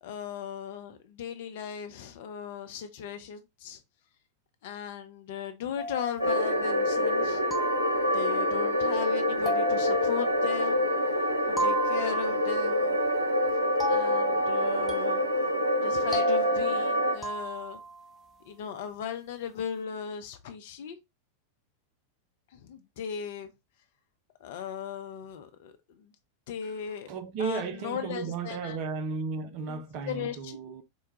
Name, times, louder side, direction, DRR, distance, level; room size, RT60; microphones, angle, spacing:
voice 1, 0.0-3.8 4.6-7.4 8.1-10.9 11.5-13.0 13.9-15.2 15.8-17.8 18.4-21.0 22.5-23.5 24.4-26.1 26.5-27.1 27.4-28.8 29.7-30.6, left 8 dB, 55° left, 0.7 m, -38 dB
sound 1, 5.8-6.9 7.5-8.5 9.5-11.0 11.6-12.7 13.8-18.1, equal, ahead, 0.9 m, -35 dB
sound 2, 6.2-17.2, left 1 dB, 85° right, 0.6 m, -26 dB
voice 2, 27.1-30.8, right 5 dB, 45° right, 0.5 m, -34 dB
4.5 x 2.3 x 3.0 m
figure-of-eight pair, 90°, 0 cm